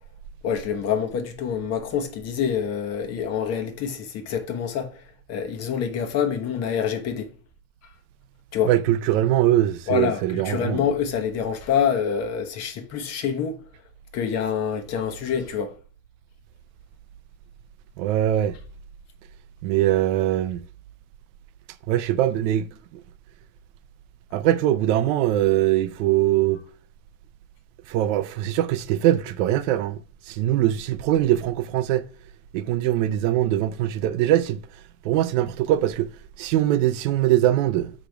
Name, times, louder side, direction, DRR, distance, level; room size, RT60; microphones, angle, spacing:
voice 1, 0.4-5.0 5.3-7.3 8.5-8.7 9.9-13.6 14.1-15.7, left 7 dB, 35° left, 1.0 m, -26 dB
voice 2, 8.7-10.8 18.0-18.6 19.6-20.6 21.9-22.7 24.3-26.6 27.9-30.0 30.3-32.0 32.5-34.6 35.0-36.1 36.4-37.9, right 13 dB, 60° right, 0.6 m, -22 dB
6.6 x 5.0 x 3.4 m
supercardioid pair, 145°, 43 cm